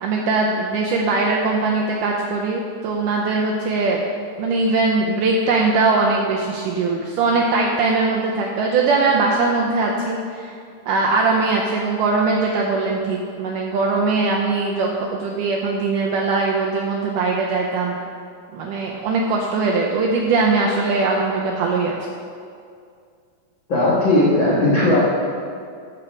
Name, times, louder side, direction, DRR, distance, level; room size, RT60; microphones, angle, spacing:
voice 1, 0.0-4.0 4.4-10.5 10.9-18.0 18.5-21.9, right 3 dB, 85° right, -1 dB, 1.9 m, -21 dB
voice 2, 23.7-25.0, left 1 dB, 80° left, -7 dB, 1.0 m, -17 dB
11.5 x 4.4 x 5.0 m, 2.3 s
omnidirectional pair, 4.4 m